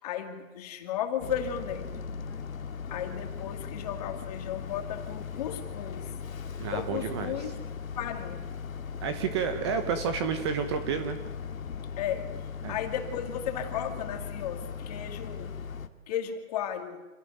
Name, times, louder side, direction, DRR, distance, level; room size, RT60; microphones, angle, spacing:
voice 1, 0.0-1.9 2.9-6.1 6.7-7.5 8.0-8.5 12.0-12.4 12.7-15.6 16.1-17.1, left 9 dB, 30° left, 5 dB, 2.6 m, -34 dB
Boat Water vehicle, 1.2-15.9, left 6 dB, 85° left, 2.2 m, -38 dB
voice 2, 6.6-7.5 9.0-11.2 12.6-12.8, right 6 dB, 20° right, 8 dB, 1.1 m, -30 dB
27.5 x 18.0 x 9.4 m, 1.1 s
hypercardioid pair, 170°, 40 cm